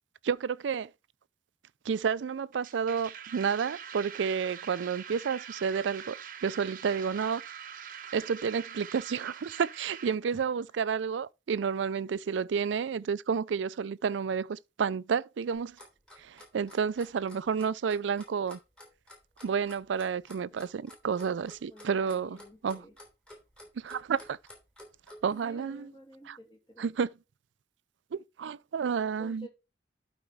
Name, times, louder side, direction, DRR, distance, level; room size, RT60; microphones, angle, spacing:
voice 1, 0.2-0.9 1.9-6.2 6.4-7.4 8.1-15.8 16.2-18.6 19.4-22.4 22.6-22.8 23.8-24.4 25.2-25.9 26.3-26.4 26.8-27.1 28.1-29.5, right 6 dB, 85° right, 0.4 m, -30 dB
sound 1, 2.5-10.2, right 8 dB, 45° right, 0.8 m, -44 dB
Clock, 15.5-25.2, left 1 dB, 5° left, 3.1 m, -51 dB
voice 2, 21.7-22.9 25.2-26.9 29.2-29.5, equal, 25° left, 2.5 m, -51 dB
12.0 x 4.3 x 3.5 m
head